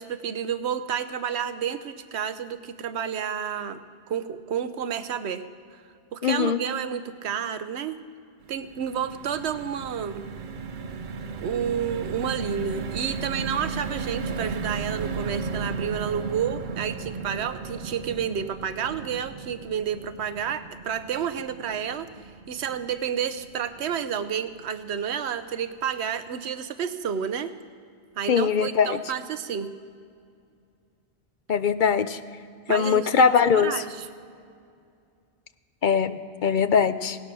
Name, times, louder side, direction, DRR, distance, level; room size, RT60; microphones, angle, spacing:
voice 1, 0.0-3.8 4.1-5.4 6.1-8.0 8.5-10.2 11.4-22.1 22.5-27.5 28.2-29.7 32.7-34.1, right 8 dB, 80° right, 12 dB, 1.0 m, -30 dB
voice 2, 6.2-6.6 28.3-29.0 31.5-32.2 32.7-33.7 35.8-37.2, left 6 dB, 55° left, 12 dB, 0.7 m, -21 dB
sound 1, 8.4-24.7 25.1-25.3 25.5-25.7, right 4 dB, 55° right, 0.8 m, -35 dB
17.0 x 12.0 x 6.1 m, 2.3 s
omnidirectional pair, 1.1 m